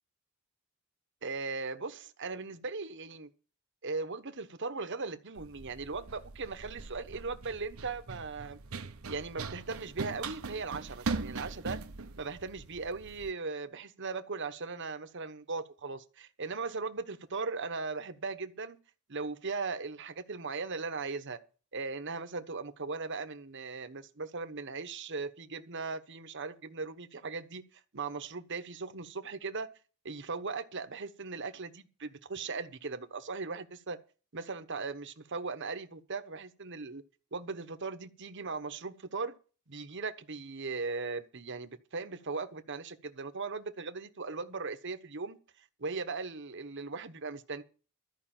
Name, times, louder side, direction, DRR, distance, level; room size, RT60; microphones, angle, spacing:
voice 1, 1.2-3.3 3.8-8.6 9.1-11.8 12.2-18.8 19.1-21.4 21.7-29.7 30.0-34.0 34.3-37.0 37.3-39.3 39.7-45.4 45.8-47.6, right 4 dB, 55° right, 1.1 m, -38 dB
Run, 5.4-13.3, right 3 dB, 80° right, 0.9 m, -41 dB
13.5 x 5.5 x 9.0 m
head